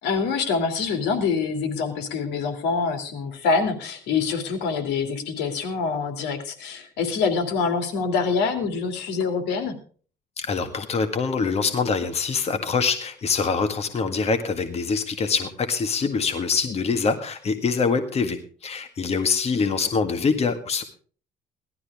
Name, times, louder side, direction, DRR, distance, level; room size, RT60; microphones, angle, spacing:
voice 1, 0.0-9.7, left 5 dB, 85° left, 7 dB, 2.6 m, -25 dB
voice 2, 10.4-20.8, left 5 dB, 40° left, 7 dB, 1.8 m, -24 dB
17.5 x 12.5 x 3.6 m, 0.42 s
cardioid pair, 110°, 17 cm